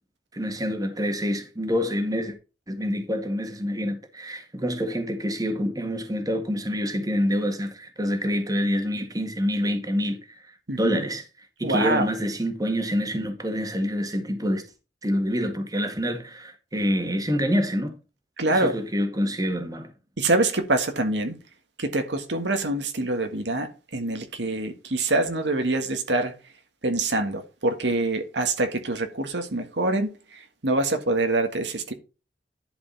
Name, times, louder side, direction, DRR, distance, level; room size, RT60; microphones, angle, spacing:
voice 1, 0.3-2.4 2.7-14.6 15.0-18.0 18.5-19.9, equal, 20° right, 1.8 m, -27 dB
voice 2, 10.7-11.0 11.6-12.1 18.4-18.8 20.2-21.4 21.8-26.3 26.8-31.9, right 2 dB, 80° right, 1.7 m, -25 dB
11.0 x 5.3 x 4.0 m
head